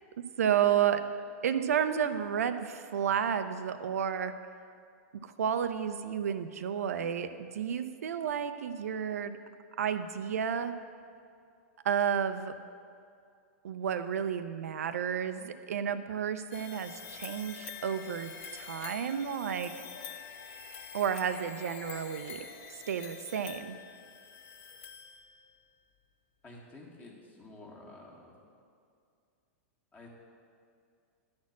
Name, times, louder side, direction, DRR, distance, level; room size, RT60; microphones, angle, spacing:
voice 1, 0.2-1.0 1.4-4.3 5.2-9.4 9.8-10.7 11.8-12.5 13.6-19.7 20.9-22.5 22.9-23.8, right 8 dB, 90° right, 9 dB, 0.5 m, -31 dB
sound 1, 16.5-25.6, left 6 dB, 55° left, 1.0 m, -46 dB
voice 2, 26.4-28.3 29.9-30.1, left 2 dB, 20° left, -2 dB, 1.6 m, -50 dB
10.5 x 4.3 x 7.2 m, 2.4 s
hypercardioid pair, 135°, 8 cm